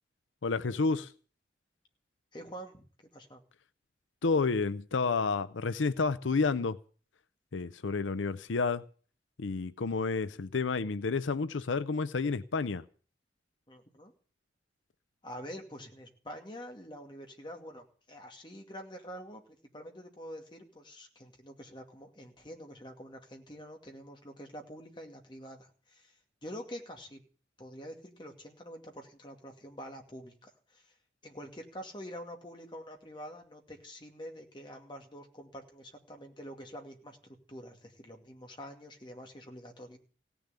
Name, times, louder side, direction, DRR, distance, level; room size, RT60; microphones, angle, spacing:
voice 1, 0.4-1.1 4.2-6.8 7.5-8.8 9.4-12.9, left 4 dB, 90° left, 0.6 m, -30 dB
voice 2, 2.3-2.8 3.1-3.4 13.7-14.1 15.2-19.4 19.7-26.1 26.4-27.2 27.6-30.9 31.2-40.0, equal, 25° left, 2.4 m, -46 dB
17.0 x 7.1 x 9.7 m
head